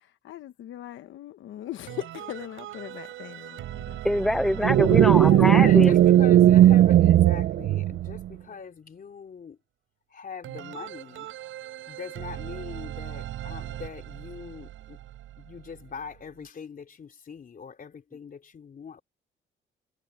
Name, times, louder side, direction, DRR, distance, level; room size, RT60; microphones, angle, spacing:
voice 1, 0.0-4.0 5.2-5.5, left 12 dB, 75° left, 1.1 m, -40 dB
sound 1, 1.9-7.7 10.4-16.4, right 13 dB, 80° right, 6.1 m, -40 dB
voice 2, 4.0-6.0, left 1 dB, ahead, 0.7 m, -24 dB
sound 2, 4.6-8.3, right 12 dB, 65° right, 0.5 m, -17 dB
voice 3, 5.1-9.6 10.1-11.3 11.8-15.0 15.4-19.0, left 6 dB, 45° left, 3.3 m, -41 dB
cardioid pair, 90°, 20 cm